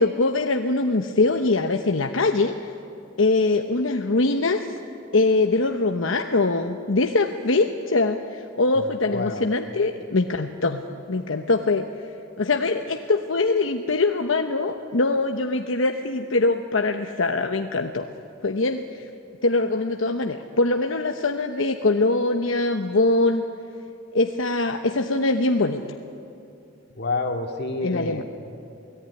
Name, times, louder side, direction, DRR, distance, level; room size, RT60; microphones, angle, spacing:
voice 1, 0.0-2.6 3.2-4.7 5.1-10.8 11.1-11.8 12.4-18.1 18.4-18.8 19.4-23.4 24.1-25.8 27.8-28.2, left 3 dB, 80° left, 5 dB, 1.0 m, -22 dB
voice 2, 8.7-9.5 26.9-28.2, left 2 dB, 55° left, 4 dB, 2.3 m, -29 dB
28.0 x 18.5 x 9.9 m, 2.6 s
head